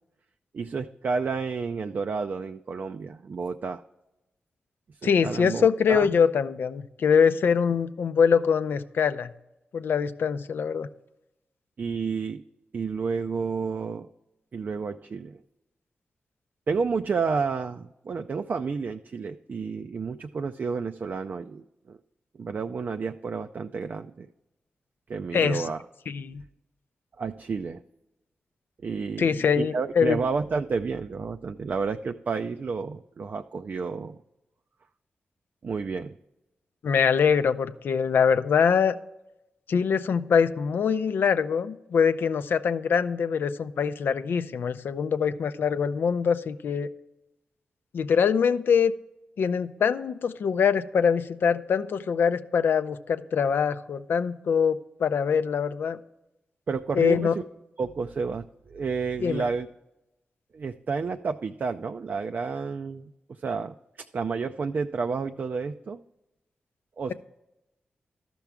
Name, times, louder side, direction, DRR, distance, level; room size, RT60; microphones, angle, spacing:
voice 1, 0.5-3.8 5.0-6.1 11.8-12.4 12.7-14.1 14.5-15.4 16.7-22.0 22.4-24.3 25.1-25.8 27.2-27.8 28.8-34.2 35.6-36.2 56.7-57.3 57.8-59.7 60.5-66.0 67.0-67.1, right 5 dB, 55° right, 6 dB, 0.4 m, -30 dB
voice 2, 5.0-9.3 9.7-10.9 25.3-25.7 26.1-26.4 29.2-30.2 36.8-38.9 39.7-46.9 47.9-48.9 49.4-56.0 56.9-57.3 59.2-59.4, left 6 dB, 75° left, 11 dB, 0.5 m, -23 dB
13.0 x 6.0 x 3.5 m, 0.94 s
cardioid pair, 50°, 4 cm